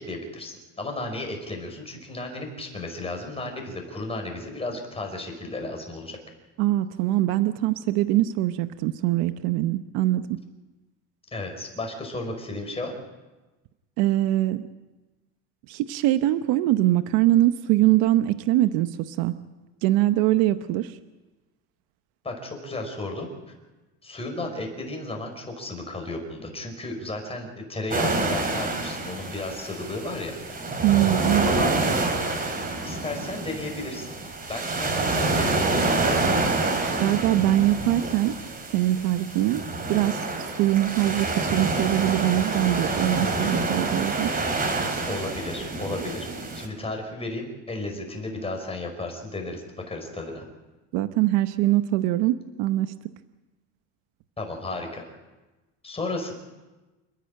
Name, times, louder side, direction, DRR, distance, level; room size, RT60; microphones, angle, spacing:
voice 1, 0.0-6.2 11.3-12.9 22.2-23.3 24.0-30.4 31.4-31.7 32.8-34.2 34.5-36.4 45.1-46.3 46.5-50.4 54.4-55.0 55.8-56.3, left 2 dB, 15° left, 2 dB, 5.3 m, -33 dB
voice 2, 6.6-10.2 14.0-14.6 15.7-19.3 19.8-20.9 30.8-31.5 37.0-38.3 38.7-39.6 39.9-40.2 40.6-44.3 50.9-52.9, right 15 dB, 70° right, 11 dB, 1.0 m, -22 dB
sound 1, 27.9-46.7, right 3 dB, 25° right, 3.7 m, -27 dB
29.0 x 10.0 x 9.0 m, 1.2 s
cardioid pair, 125°, 37 cm